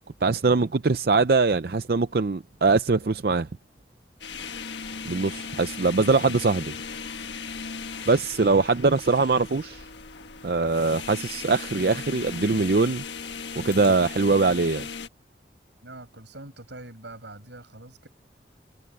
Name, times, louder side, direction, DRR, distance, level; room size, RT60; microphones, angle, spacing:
voice 1, 0.2-3.5 5.1-6.7 8.1-9.9 10.4-13.0 13.6-14.9, right 3 dB, 60° right, 0.5 m, -22 dB
sound 1, 4.2-15.1, left 5 dB, 90° left, 1.4 m, -37 dB
voice 2, 15.8-18.1, right 2 dB, 90° right, 7.9 m, -44 dB
head